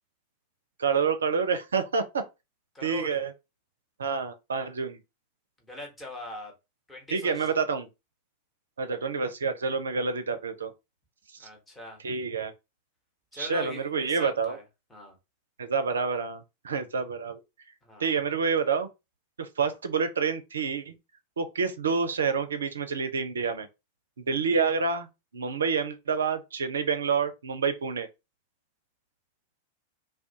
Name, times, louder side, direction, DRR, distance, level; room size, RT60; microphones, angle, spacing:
voice 1, 0.8-2.2 2.8-3.3 4.0-5.0 7.1-7.9 8.8-10.7 11.4-11.5 12.0-12.5 13.4-14.6 15.6-17.4 18.0-18.9 19.4-20.9 21.4-23.7 24.2-25.1 25.3-28.1, right 5 dB, 70° right, 0.4 m, -28 dB
voice 2, 2.7-3.1 5.7-6.5 6.9-7.6 11.4-12.0 13.3-14.6 14.9-15.2 17.8-18.1, left 1 dB, 10° left, 1.0 m, -41 dB
2.3 x 2.1 x 2.7 m
figure-of-eight pair, 90°, 0 cm